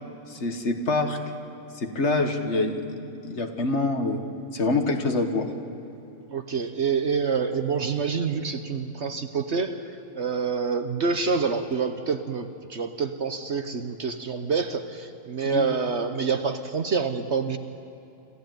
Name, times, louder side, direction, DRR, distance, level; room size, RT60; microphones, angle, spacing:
voice 1, 0.3-1.2 1.7-4.2 4.5-5.5 15.4-15.7, left 3 dB, 50° left, 5 dB, 1.7 m, -26 dB
voice 2, 6.3-17.6, right 5 dB, 50° right, 8 dB, 1.0 m, -27 dB
26.5 x 14.5 x 9.3 m, 2.9 s
omnidirectional pair, 1.6 m